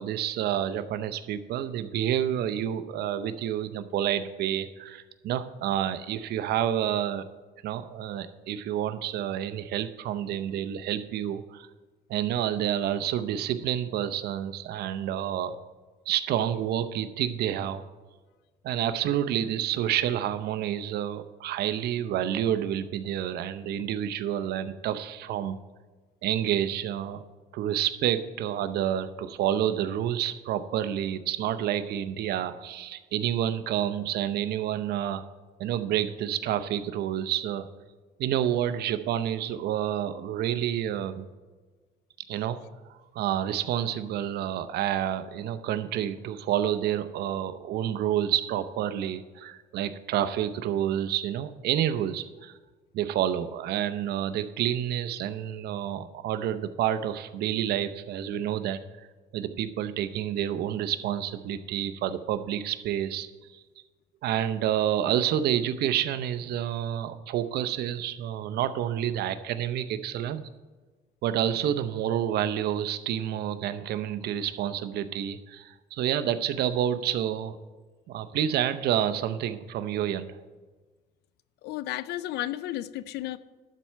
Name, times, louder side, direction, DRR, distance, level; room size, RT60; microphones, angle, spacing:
voice 1, 0.0-7.3 7.6-11.7 12.1-15.6 16.1-17.8 18.6-25.6 26.2-27.2 27.5-35.2 35.6-37.7 38.2-41.3 42.3-42.6 42.9-52.5 52.9-59.1 59.3-63.6 64.2-70.4 71.2-77.6 78.1-80.4, right 10 dB, 70° right, 0.7 m, -29 dB
voice 2, 81.6-83.4, left 14 dB, 80° left, 0.5 m, -33 dB
12.0 x 4.6 x 7.3 m
cardioid pair, 110°, 17 cm